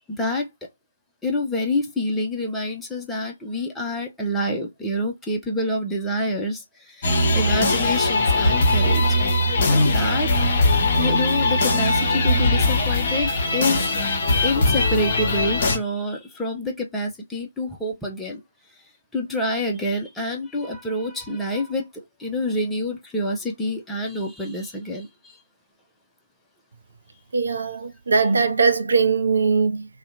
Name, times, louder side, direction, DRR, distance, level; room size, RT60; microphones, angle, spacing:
voice 1, 0.1-0.5 1.2-9.1 9.4-10.3 10.9-18.4 19.1-25.4, left 1 dB, 5° left, 0.4 m, -27 dB
sound 1, 7.0-15.8, left 2 dB, 35° left, 0.7 m, -20 dB
voice 2, 27.3-29.9, right 4 dB, 55° right, 0.5 m, -20 dB
2.7 x 2.1 x 2.5 m
figure-of-eight pair, 145°, 0 cm